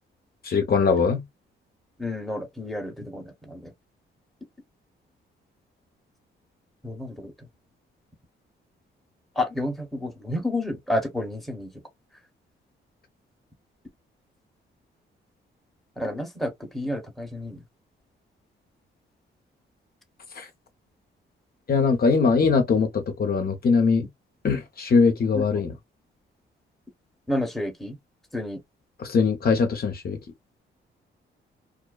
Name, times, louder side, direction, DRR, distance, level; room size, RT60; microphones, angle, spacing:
voice 1, 0.4-1.2 20.4-20.5 21.7-24.1 24.4-25.7 29.0-30.2, left 5 dB, 50° left, 0.7 m, -21 dB
voice 2, 2.0-3.6 6.8-7.3 9.4-11.7 16.0-17.6 25.3-25.4 27.3-28.0 28.3-28.6, left 1 dB, ahead, 0.9 m, -30 dB
2.5 x 2.2 x 2.2 m
cardioid pair, 80°, 20 cm